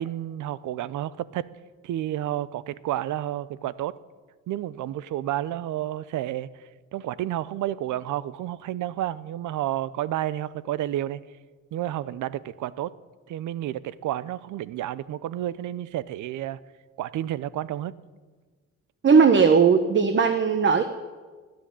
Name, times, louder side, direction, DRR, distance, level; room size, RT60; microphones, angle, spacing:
voice 1, 0.0-1.5 1.8-4.0 4.5-6.5 6.9-11.2 11.7-12.9 13.3-16.6 17.0-17.9, right 13 dB, 75° right, 18 dB, 0.6 m, -30 dB
voice 2, 19.0-20.8, right 5 dB, 40° right, 8 dB, 1.1 m, -18 dB
13.5 x 10.5 x 9.9 m, 1.4 s
cardioid pair, 90°, 30 cm